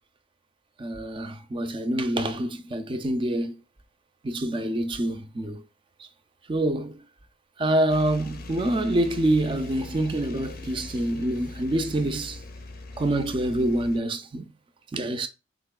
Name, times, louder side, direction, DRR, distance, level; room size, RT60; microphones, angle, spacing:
voice 1, 0.8-3.6 4.2-5.6 6.5-7.0 7.6-12.4 13.0-14.5 14.9-15.3, right 1 dB, 25° right, 0.4 m, -26 dB
sound 1, 7.9-14.0, left 2 dB, 50° left, 0.5 m, -41 dB
4.0 x 2.9 x 2.2 m
head